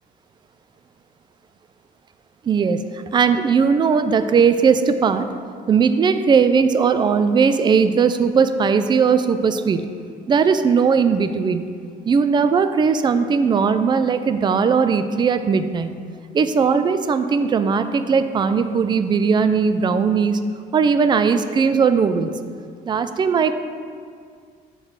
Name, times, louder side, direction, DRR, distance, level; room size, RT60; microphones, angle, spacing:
voice 1, 2.4-5.3 5.7-9.9 10.3-11.7 12.1-16.0 16.3-20.4 20.7-22.4 22.9-23.5, right 5 dB, 25° right, 10 dB, 0.3 m, -18 dB
6.6 x 3.2 x 5.9 m, 2.1 s
cardioid pair, 110°, 17 cm